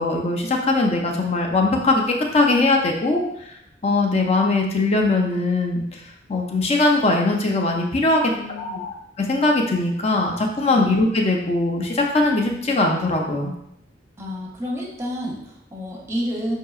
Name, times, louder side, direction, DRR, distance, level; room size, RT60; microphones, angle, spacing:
voice 1, 0.0-2.0 2.3-3.2 3.8-6.0 6.3-8.2 8.6-13.5, left 2 dB, 35° left, 1 dB, 0.5 m, -20 dB
voice 2, 8.3-8.9 10.7-10.9 14.2-16.5, equal, 15° right, -2 dB, 0.8 m, -30 dB
5.8 x 2.7 x 2.4 m, 0.78 s
head